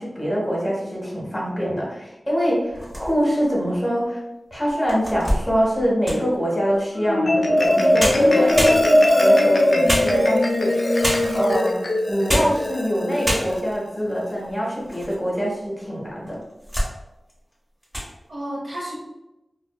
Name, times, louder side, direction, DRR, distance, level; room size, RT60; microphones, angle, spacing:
voice 1, 0.0-4.2 4.5-8.7 9.2-10.7 11.3-11.8 12.1-16.4, equal, 15° left, -4 dB, 1.1 m, -24 dB
sound 1, 2.7-3.4 4.0-4.1 4.7-6.4 7.6-7.7 8.0-9.2 9.9-10.6 11.0-11.5 12.1-12.6 12.9-13.0 13.2-13.8 14.4-15.2 15.5-15.6 16.3-16.9 17.3-17.5 17.8-18.1, equal, 10° right, 1.0 m, -26 dB
Marimba xylophone, 7.0-13.6, left 1 dB, 65° left, 0.3 m, -19 dB
voice 2, 8.3-9.5 18.3-19.0, equal, 70° right, -5 dB, 0.9 m, -31 dB
2.5 x 2.2 x 2.2 m, 0.94 s
cardioid pair, 45°, 0 cm